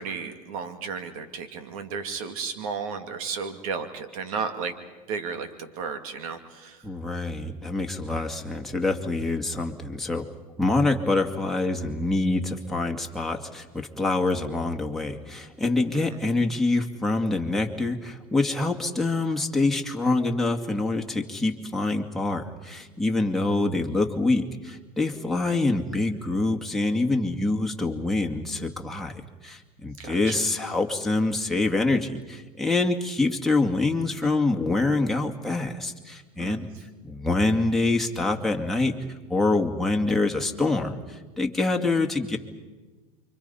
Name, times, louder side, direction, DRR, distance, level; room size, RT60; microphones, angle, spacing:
voice 1, 0.0-4.7 5.1-6.8 15.9-16.2 30.0-30.3 36.4-36.7, right 5 dB, 75° right, 8 dB, 2.6 m, -33 dB
voice 2, 6.8-10.3 10.6-36.7 37.0-39.0 39.3-42.4, left 2 dB, ahead, 0 dB, 2.3 m, -25 dB
29.0 x 24.5 x 5.7 m, 1.3 s
supercardioid pair, 110°, 18 cm